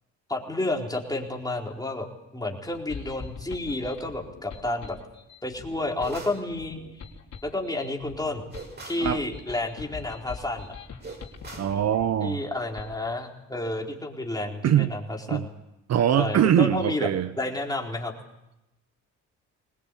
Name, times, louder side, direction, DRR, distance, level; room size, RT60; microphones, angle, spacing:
voice 1, 0.3-2.1 2.3-5.0 5.4-6.8 7.4-8.4 8.9-10.7 12.2-15.5 16.2-17.1 17.4-18.1, left 2 dB, 10° left, 4.2 m, -30 dB
sound 1, 2.6-13.0, left 5 dB, 60° left, 3.7 m, -43 dB
sound 2, 6.0-6.5 8.5-9.1 11.0-11.8, right 3 dB, 35° right, 5.5 m, -41 dB
voice 2, 11.6-12.4 14.6-14.9 15.3-15.5 15.9-17.3, right 10 dB, 60° right, 0.8 m, -22 dB
22.0 x 19.5 x 8.4 m
cardioid pair, 90°, 30 cm